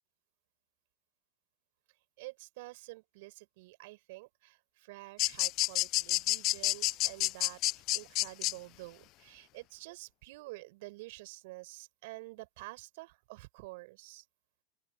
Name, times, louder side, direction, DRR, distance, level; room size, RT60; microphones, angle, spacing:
voice 1, 2.2-7.6 7.9-14.2, right 22 dB, 65° right, 4.8 m, -49 dB
sound 1, 5.2-8.5, left 18 dB, 50° left, 0.4 m, -29 dB
open air
hypercardioid pair, 95°, 0 cm